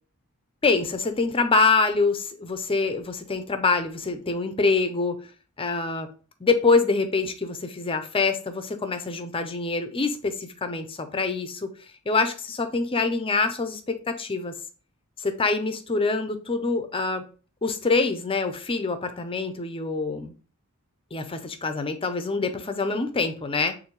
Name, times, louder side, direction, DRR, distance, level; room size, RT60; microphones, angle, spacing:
voice 1, 0.6-5.2 5.6-6.1 6.4-11.7 12.1-14.5 15.2-17.2 17.6-20.3 21.1-23.7, left 4 dB, 25° left, 8 dB, 0.6 m, -25 dB
6.6 x 2.6 x 3.0 m, 0.37 s
head